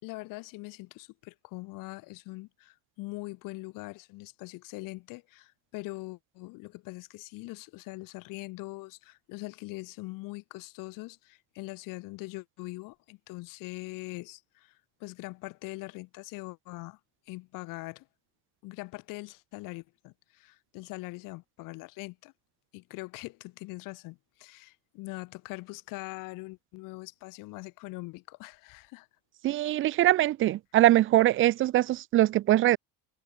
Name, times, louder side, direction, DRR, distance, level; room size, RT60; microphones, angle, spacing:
voice 1, 0.0-17.0 17.3-18.1 18.6-22.3 22.7-29.1, left 23 dB, 65° left, 3.5 m, -42 dB
voice 2, 29.4-32.8, right 14 dB, 35° right, 0.7 m, -22 dB
cardioid pair, 175°, 34 cm